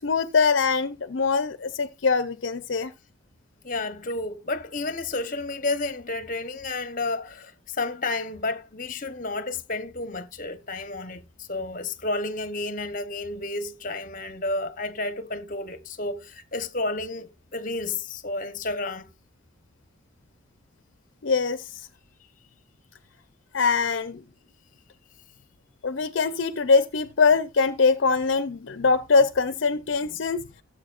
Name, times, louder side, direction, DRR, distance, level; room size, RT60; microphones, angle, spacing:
voice 1, 0.0-2.9 21.2-21.9 23.5-24.2 25.8-30.4, left 4 dB, 65° left, 0.6 m, -23 dB
voice 2, 3.6-19.1, left 2 dB, 40° left, 0.9 m, -31 dB
16.5 x 7.7 x 2.5 m
head